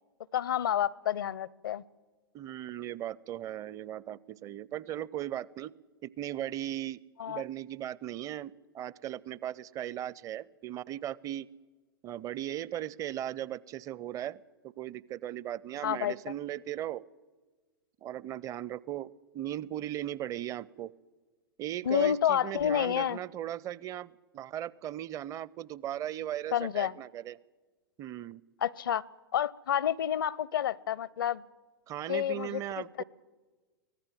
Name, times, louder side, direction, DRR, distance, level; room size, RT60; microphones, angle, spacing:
voice 1, 0.3-1.8 7.2-7.4 15.8-16.1 21.8-23.2 26.5-26.9 28.6-29.0 29.3-31.4 32.1-33.0, left 10 dB, 65° left, 25 dB, 0.6 m, -29 dB
voice 2, 2.3-5.7 6.0-7.0 7.3-11.5 12.0-17.0 18.0-20.9 21.6-27.4 28.0-28.4 31.9-33.0, right 12 dB, 30° right, 24 dB, 0.6 m, -37 dB
24.0 x 18.0 x 7.6 m, 1.3 s
figure-of-eight pair, 95°, 12 cm